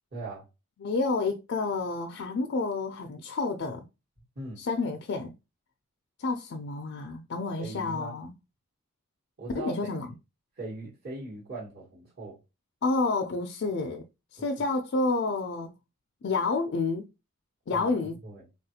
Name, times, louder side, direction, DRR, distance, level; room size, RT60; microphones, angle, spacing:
voice 1, 0.1-0.4 4.4-4.6 7.6-8.2 9.4-9.7 10.6-12.4 17.7-17.9 18.2-18.5, right 2 dB, 45° right, 1.2 m, -39 dB
voice 2, 0.8-3.8 4.6-5.3 6.2-8.3 9.5-10.1 12.8-14.0 14.3-15.7 16.2-17.1 17.7-18.2, left 3 dB, 55° left, 0.4 m, -29 dB
3.4 x 2.3 x 2.8 m
head